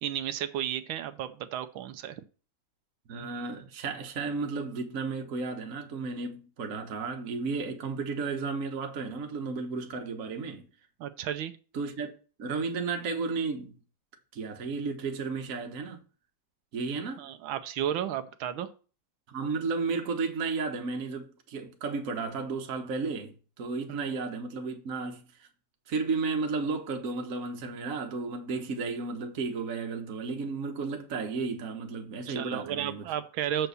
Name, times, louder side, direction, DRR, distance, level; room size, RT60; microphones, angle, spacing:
voice 1, 0.0-2.2 11.0-11.5 17.2-18.7 23.9-24.0 32.3-33.7, right 10 dB, 85° right, 1.5 m, -33 dB
voice 2, 3.1-10.7 11.7-12.1 12.4-13.7 14.3-16.0 16.7-17.2 19.3-25.3 25.9-33.1, right 4 dB, 50° right, 1.4 m, -33 dB
7.0 x 4.5 x 6.8 m
omnidirectional pair, 2.2 m